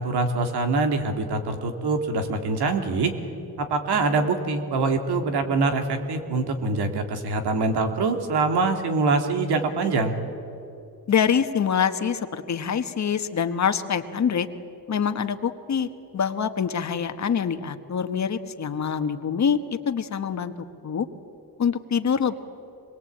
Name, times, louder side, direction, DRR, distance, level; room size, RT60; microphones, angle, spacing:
voice 1, 0.0-3.1 3.6-10.1, right 3 dB, 80° right, 6 dB, 2.8 m, -24 dB
voice 2, 11.1-14.5 14.9-20.5 20.8-21.1 21.6-22.3, left 7 dB, 45° left, 9 dB, 1.4 m, -25 dB
25.5 x 21.5 x 8.7 m, 2.7 s
cardioid pair, 120°, 39 cm